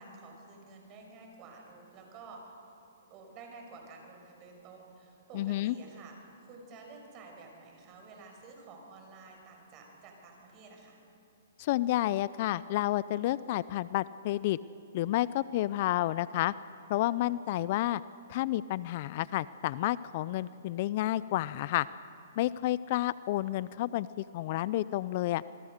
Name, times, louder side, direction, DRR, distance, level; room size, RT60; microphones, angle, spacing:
voice 1, 0.0-2.5 3.1-11.0, right 3 dB, 30° right, 2 dB, 6.4 m, -51 dB
voice 2, 5.3-5.7 11.6-14.6 14.9-16.5 16.9-18.0 18.3-21.9 22.4-25.4, left 15 dB, 45° left, 18 dB, 0.5 m, -30 dB
27.0 x 22.0 x 6.6 m, 2.6 s
hypercardioid pair, 140°, 0 cm